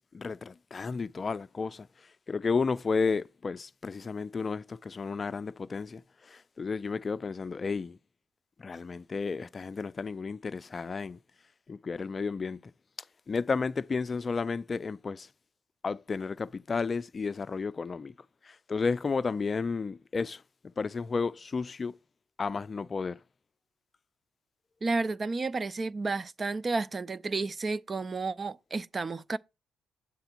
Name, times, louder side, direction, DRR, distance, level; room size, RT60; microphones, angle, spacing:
voice 1, 0.1-8.0 8.6-11.2 11.7-12.7 13.3-15.3 15.8-18.1 18.4-22.0 22.4-23.2, left 4 dB, 35° left, 0.4 m, -32 dB
voice 2, 24.8-29.4, right 3 dB, 30° right, 0.4 m, -31 dB
9.9 x 7.8 x 4.4 m
cardioid pair, 90°, 0 cm